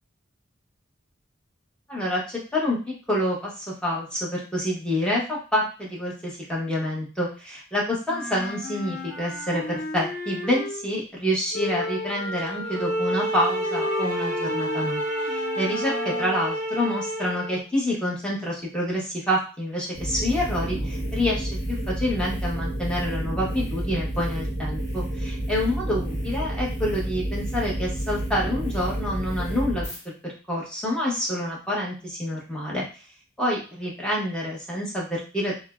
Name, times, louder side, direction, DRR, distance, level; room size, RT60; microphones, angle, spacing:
voice 1, 1.9-2.8 3.1-29.8 30.2-32.8 33.4-35.6, left 1 dB, 5° left, -4 dB, 0.8 m, -27 dB
Wind instrument woodwind instrument, 8.1-11.0 11.5-16.4, left 2 dB, 70° left, 0.9 m, -33 dB
sound 1, 12.6-17.6, right 1 dB, 40° right, 0.4 m, -29 dB
sound 2, 19.9-30.0, right 1 dB, 40° left, 1.2 m, -30 dB
3.2 x 2.0 x 2.3 m, 0.35 s
head